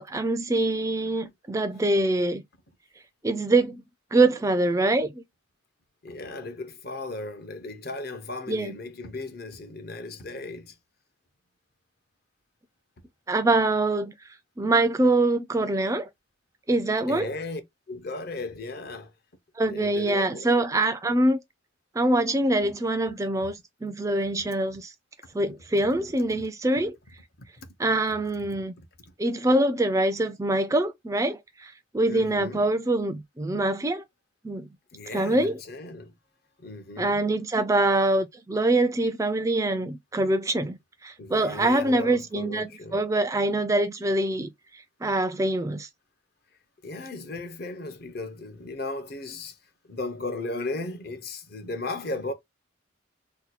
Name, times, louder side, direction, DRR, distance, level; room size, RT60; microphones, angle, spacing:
voice 1, 0.0-2.4 3.2-3.8 4.1-5.1 8.5-8.8 13.3-14.1 14.6-16.1 16.7-17.3 19.6-21.4 22.0-24.9 25.3-27.0 27.8-28.7 29.2-34.0 34.4-34.7 35.1-35.6 37.0-44.5 45.0-45.9, right 2 dB, 15° right, 0.3 m, -24 dB
voice 2, 6.0-10.7 17.1-17.6 17.9-19.1 19.7-20.5 23.4-23.5 28.8-28.9 32.1-32.7 34.9-36.1 36.6-37.3 41.2-43.1 46.8-49.6 49.9-52.3, left 2 dB, 50° left, 0.7 m, -36 dB
2.7 x 2.2 x 4.1 m
head